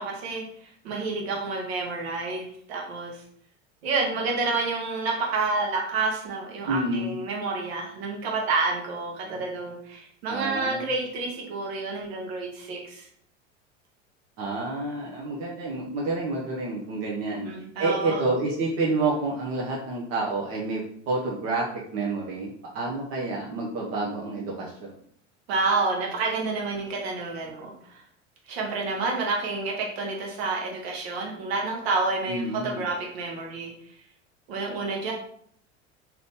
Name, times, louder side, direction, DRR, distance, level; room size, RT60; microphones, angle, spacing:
voice 1, 0.0-3.2 3.8-13.1 17.3-18.2 25.5-28.0 28.5-33.7 34.5-35.1, right 3 dB, 55° right, 0 dB, 1.3 m, -29 dB
voice 2, 6.7-7.1 9.2-9.4 10.3-10.9 14.4-17.5 17.8-21.7 21.9-24.9 32.3-32.8, right 2 dB, 40° right, -3 dB, 0.9 m, -29 dB
3.8 x 2.9 x 3.5 m, 0.63 s
figure-of-eight pair, 75°, 37 cm